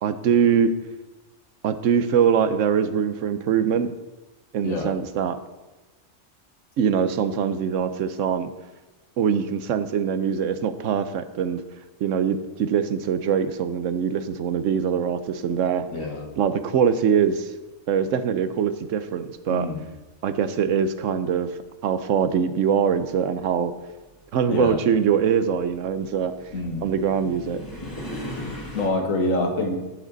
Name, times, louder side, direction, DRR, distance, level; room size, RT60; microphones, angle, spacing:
voice 1, 0.0-0.8 1.6-3.9 4.5-5.4 6.8-8.5 9.2-11.6 12.0-15.8 16.4-17.5 17.9-19.7 20.2-21.5 21.8-23.7 24.3-26.3 26.8-27.7, right 7 dB, 75° right, 11 dB, 1.1 m, -23 dB
voice 2, 15.9-16.3 19.5-19.8 24.5-24.8 26.5-26.9 28.7-29.8, left 2 dB, 85° left, 3 dB, 1.9 m, -26 dB
sound 1, 21.6-21.7 22.8-28.9, left 1 dB, 15° left, 1.9 m, -39 dB
12.5 x 7.6 x 4.0 m, 1.1 s
omnidirectional pair, 1.3 m